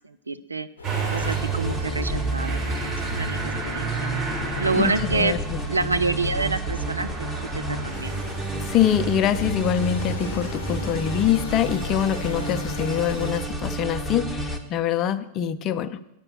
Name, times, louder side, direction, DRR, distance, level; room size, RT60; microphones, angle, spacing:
voice 1, 0.0-0.7 1.1-4.1 4.6-5.4 5.7-7.3 7.5-8.2, right 4 dB, 80° right, 12 dB, 0.4 m, -28 dB
sound 1, 0.8-13.4, left 4 dB, 70° left, 0.8 m, -40 dB
Motor vehicle (road) / Engine starting, 0.8-12.5, right 4 dB, 30° right, 2.2 m, -32 dB
sound 2, 1.2-14.6, right 1 dB, ahead, 1.0 m, -32 dB
voice 2, 4.7-5.4 8.6-16.0, left 10 dB, 35° left, 13 dB, 0.5 m, -24 dB
8.7 x 5.3 x 7.8 m, 0.89 s
figure-of-eight pair, 90°, 0 cm